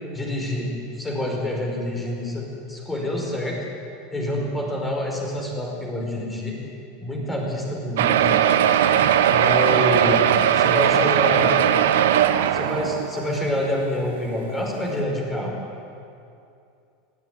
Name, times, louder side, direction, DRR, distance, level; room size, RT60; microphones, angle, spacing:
voice 1, 0.1-3.6 4.1-6.5 7.0-8.4 8.9-9.0 9.3-10.3 10.5-11.6 12.5-15.5, left 1 dB, 10° left, -1 dB, 5.0 m, -27 dB
sound 1, 8.0-13.4 14.1-14.2 14.4-14.5 14.9-15.0, right 10 dB, 85° right, 1.1 m, -19 dB
19.5 x 15.5 x 9.3 m, 2.6 s
supercardioid pair, 145°, 0 cm